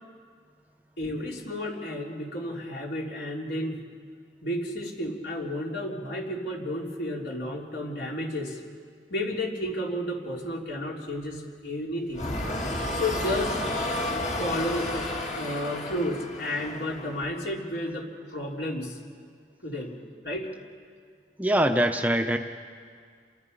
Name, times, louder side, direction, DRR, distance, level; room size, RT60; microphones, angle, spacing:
voice 1, 1.0-3.8 4.4-8.6 9.1-12.3 12.9-13.6 14.4-19.0 19.6-19.9 20.2-20.5, left 1 dB, 65° left, -1 dB, 3.5 m, -32 dB
sound 1, 12.1-17.3, left 1 dB, 40° left, 2.1 m, -31 dB
voice 2, 21.4-22.4, right 1 dB, 10° right, 5 dB, 0.7 m, -23 dB
28.5 x 23.0 x 5.5 m, 2.1 s
head